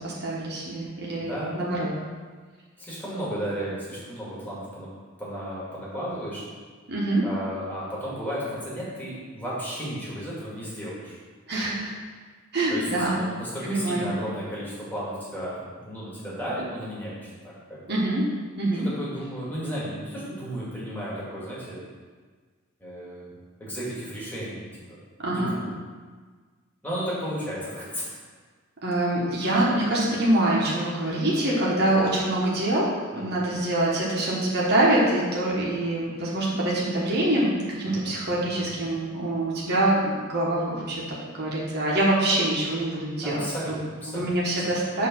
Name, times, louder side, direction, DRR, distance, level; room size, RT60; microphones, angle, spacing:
voice 1, 0.0-1.9 6.9-7.2 11.5-11.9 12.5-13.2 13.6-14.1 17.9-18.3 18.6-18.9 25.2-25.5 28.8-32.9 33.2-43.8 44.1-45.1, right 1 dB, 50° right, -5 dB, 1.3 m, -25 dB
voice 2, 1.2-1.6 2.8-4.9 5.2-6.4 7.2-11.2 12.7-18.0 18.8-21.9 22.8-23.3 23.6-25.0 25.3-25.8 26.8-28.2 33.1-33.5 37.8-38.8 43.2-44.3 44.6-44.7, equal, 10° left, -8 dB, 1.9 m, -34 dB
6.7 x 3.2 x 6.0 m, 1.5 s
head